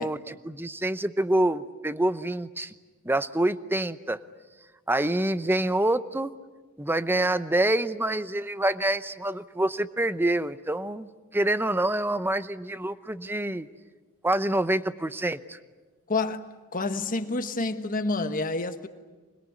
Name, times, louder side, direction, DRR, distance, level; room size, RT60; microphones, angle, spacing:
voice 1, 0.0-2.7 3.0-4.2 4.9-6.3 6.8-13.7 14.2-15.6, right 1 dB, 10° right, 0.8 m, -26 dB
voice 2, 16.1-16.4 16.7-18.9, left 3 dB, 40° left, 1.3 m, -28 dB
25.5 x 21.5 x 9.6 m
head